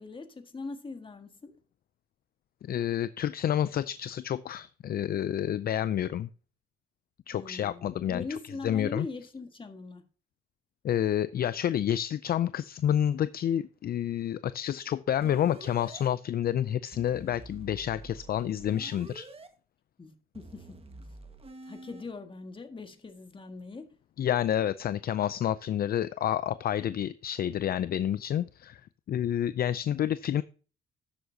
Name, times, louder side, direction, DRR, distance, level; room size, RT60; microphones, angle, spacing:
voice 1, 0.0-1.5 7.3-10.0 20.0-20.8 21.6-23.9, left 3 dB, 25° left, 1.7 m, -41 dB
voice 2, 2.6-6.3 7.3-8.2 8.6-9.1 10.8-19.3 24.2-28.8 29.1-30.4, left 10 dB, 50° left, 0.4 m, -29 dB
sound 1, 15.2-16.1 16.9-19.5 20.3-22.0, right 2 dB, 30° right, 1.6 m, -47 dB
11.5 x 8.0 x 2.8 m
cardioid pair, 90°, 20 cm